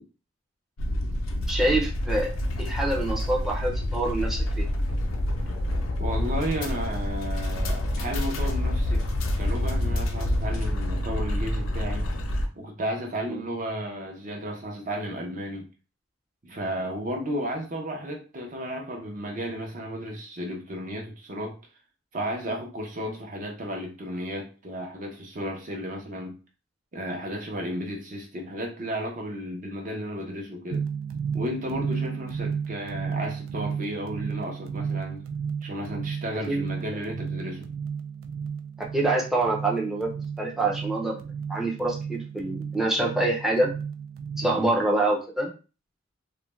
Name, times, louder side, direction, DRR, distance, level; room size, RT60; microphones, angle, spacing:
sound 1, 0.8-12.5, left 1 dB, 80° left, 0.5 m, -27 dB
voice 1, 1.5-2.3 2.6-4.7 13.3-13.4 23.1-23.2 36.5-36.6 38.8-40.1 40.4-43.7 44.4-45.5, right 2 dB, ahead, -3 dB, 0.5 m, -26 dB
voice 2, 6.0-9.1 9.4-12.1 12.5-15.7 16.4-21.5 22.1-26.3 26.9-30.8 31.3-35.2 35.6-37.7 44.4-44.7, equal, 40° right, 1 dB, 0.7 m, -33 dB
sound 2, 30.7-44.6, right 6 dB, 85° right, 0.3 m, -33 dB
2.4 x 2.2 x 3.1 m, 0.34 s
head